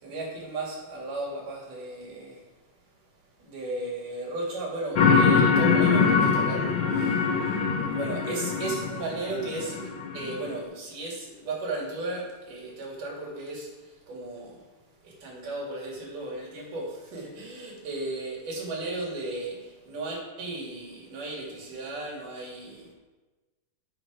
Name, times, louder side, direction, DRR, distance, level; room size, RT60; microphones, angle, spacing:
voice 1, 0.0-2.4 3.4-7.6 7.9-9.8 10.1-13.7 14.1-14.6 15.0-22.9, right 2 dB, 90° right, -3 dB, 4.0 m, -35 dB
sound 1, 5.0-10.5, left 5 dB, 70° left, 1.1 m, -23 dB
11.0 x 6.5 x 5.0 m, 1.2 s
omnidirectional pair, 3.6 m